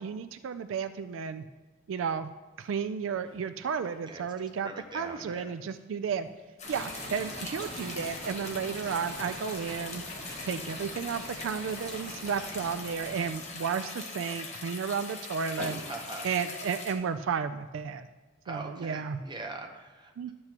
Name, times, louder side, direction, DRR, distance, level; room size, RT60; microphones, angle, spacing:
voice 1, 0.0-1.4 1.9-2.3 2.6-6.3 6.7-10.0 10.4-15.8 16.2-18.1 18.5-19.2 20.2-20.3, right 6 dB, 75° right, 11 dB, 0.3 m, -33 dB
sound 1, 2.5-17.0, equal, 5° left, 1.8 m, -53 dB
voice 2, 4.6-5.6 15.9-16.3 18.4-20.3, right 2 dB, 25° right, 3 dB, 0.8 m, -42 dB
sound 2, 6.6-16.9, left 4 dB, 35° left, 1.0 m, -42 dB
sound 3, 6.6-13.7, right 1 dB, 45° right, 1.8 m, -44 dB
11.5 x 7.7 x 2.9 m, 1.2 s
head